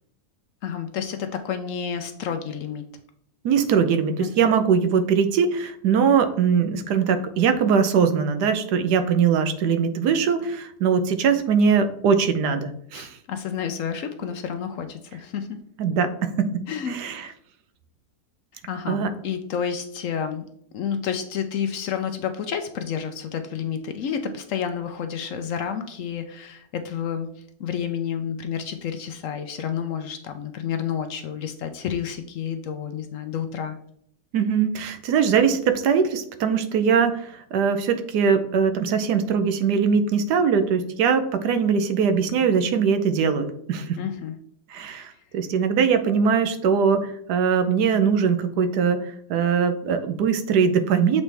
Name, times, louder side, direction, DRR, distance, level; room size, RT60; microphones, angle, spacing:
voice 1, 0.6-2.9 4.2-4.3 12.9-15.6 16.7-17.0 18.7-20.4 20.7-33.8 44.0-44.3, left 8 dB, 65° left, 7 dB, 0.8 m, -30 dB
voice 2, 3.4-13.1 15.8-17.3 18.9-19.1 34.3-44.0 44.7-51.2, right 6 dB, 90° right, 8 dB, 1.3 m, -21 dB
7.2 x 4.2 x 3.3 m, 0.68 s
omnidirectional pair, 1.7 m